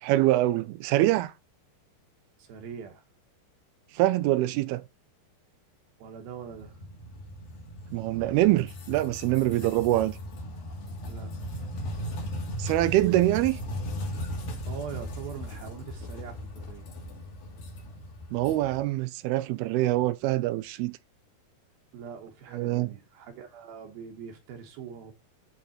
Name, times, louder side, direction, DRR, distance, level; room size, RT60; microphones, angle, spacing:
voice 1, 0.0-1.3 4.0-4.8 7.9-10.1 12.6-13.6 18.3-21.0 22.5-22.9, right 16 dB, 90° right, 2.6 m, -24 dB
voice 2, 2.4-3.0 6.0-6.8 11.1-11.3 14.7-16.8 21.9-25.1, right 7 dB, 75° right, 3.1 m, -42 dB
sound 1, 6.4-18.8, equal, 70° left, 4.0 m, -37 dB
10.5 x 4.2 x 4.2 m
omnidirectional pair, 4.4 m